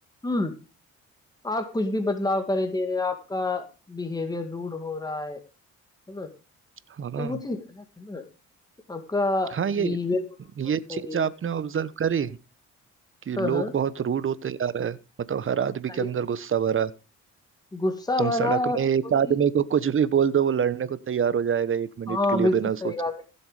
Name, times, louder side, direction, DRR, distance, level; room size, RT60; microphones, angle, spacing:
voice 1, 1.4-5.4 6.1-6.3 7.2-8.2 8.9-10.2 10.9-11.3 13.4-13.7 15.9-16.1 17.7-19.4 22.1-22.5 22.8-23.1, left 2 dB, 15° left, 6 dB, 2.1 m, -28 dB
voice 2, 7.0-7.4 9.5-10.0 10.6-12.4 13.3-15.0 15.3-16.9 18.2-22.8, right 8 dB, 45° right, 16 dB, 1.1 m, -25 dB
16.0 x 7.1 x 5.0 m, 0.31 s
cardioid pair, 90°, 30 cm